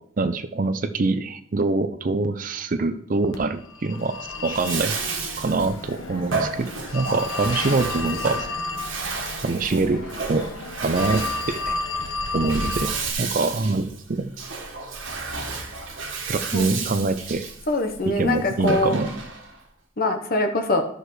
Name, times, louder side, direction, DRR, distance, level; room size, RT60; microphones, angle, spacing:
voice 1, 0.0-4.9 5.4-8.5 9.4-10.5 10.8-11.8 12.3-14.3 16.3-17.5 18.1-19.1, right 3 dB, 40° right, 10 dB, 0.5 m, -25 dB
Telephone, 3.3-13.1, left 3 dB, 80° left, 1.1 m, -32 dB
Bathtub (filling or washing), 4.4-19.6, right 4 dB, 75° right, 1.5 m, -32 dB
voice 2, 17.7-19.0 20.0-20.8, left 2 dB, 45° left, 5 dB, 1.0 m, -23 dB
12.0 x 6.4 x 3.2 m, 0.70 s
head